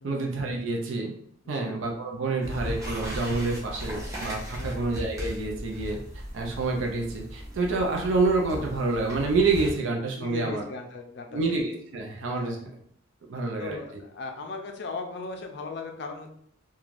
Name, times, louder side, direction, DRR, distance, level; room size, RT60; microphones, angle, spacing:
voice 1, 0.0-1.1 1.5-6.0 6.3-10.6 11.3-12.7 13.3-13.8, right 3 dB, 70° right, 1 dB, 0.4 m, -28 dB
sound 1, 2.4-9.7, equal, 15° right, 0.6 m, -37 dB
voice 2, 10.2-11.4 12.4-12.6 13.6-16.3, left 3 dB, 55° left, 4 dB, 0.4 m, -38 dB
3.1 x 2.3 x 2.5 m, 0.66 s
head